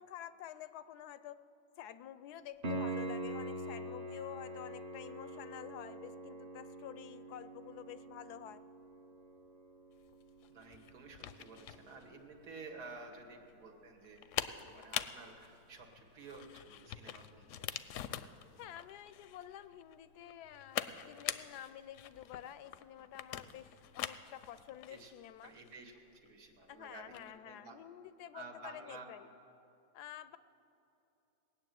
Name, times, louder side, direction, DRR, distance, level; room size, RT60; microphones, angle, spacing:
voice 1, 0.0-1.4 1.8-8.6 18.6-25.5 26.7-29.3 29.9-30.4, left 11 dB, 90° left, 14 dB, 1.1 m, -49 dB
Piano, 2.6-13.3 16.6-16.7, right 2 dB, 40° right, 0.6 m, -45 dB
sound 1, 10.0-27.4, left 10 dB, 70° left, 0.8 m, -45 dB
voice 2, 10.5-14.2 14.7-17.9 24.9-25.1 25.4-27.8 28.3-29.1, right 3 dB, 80° right, 2 dB, 2.1 m, -52 dB
19.0 x 7.0 x 9.1 m, 2.9 s
omnidirectional pair, 1.6 m